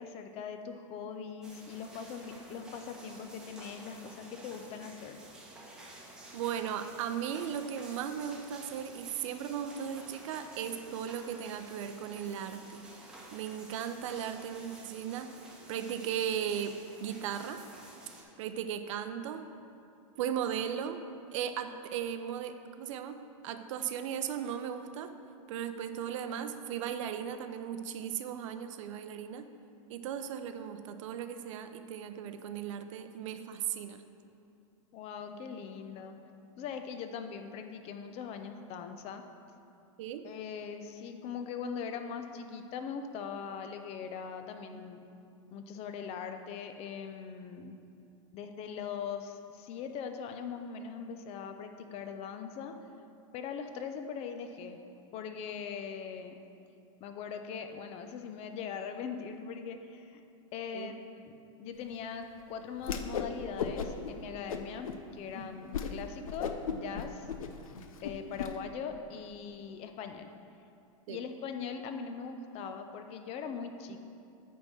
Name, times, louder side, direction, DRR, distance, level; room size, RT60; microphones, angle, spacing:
voice 1, 0.0-5.2 34.9-36.1 36.6-39.2 40.2-45.0 45.5-47.8 48.3-52.8 53.3-54.8 55.1-56.4 57.0-60.2 60.5-67.3 68.0-70.3 71.1-74.0, left 6 dB, 35° left, 7 dB, 0.6 m, -41 dB
sound 1, 1.4-18.2, right 1 dB, 5° right, 1.1 m, -51 dB
voice 2, 6.3-12.8 13.3-15.3 15.7-17.6 18.4-19.4 20.2-21.0 21.3-23.2 23.4-25.1 25.5-29.4 29.9-34.0 40.0-40.3 60.7-60.9 65.5-65.7 71.1-71.2, right 9 dB, 65° right, 8 dB, 0.6 m, -37 dB
Whoosh swoosh swish, 62.8-63.3 63.6-64.1 64.5-65.0 65.4-65.5 65.7-65.9 66.2-68.5, left 7 dB, 85° left, 0.6 m, -35 dB
9.4 x 3.7 x 6.1 m, 2.6 s
hypercardioid pair, 130°, 17 cm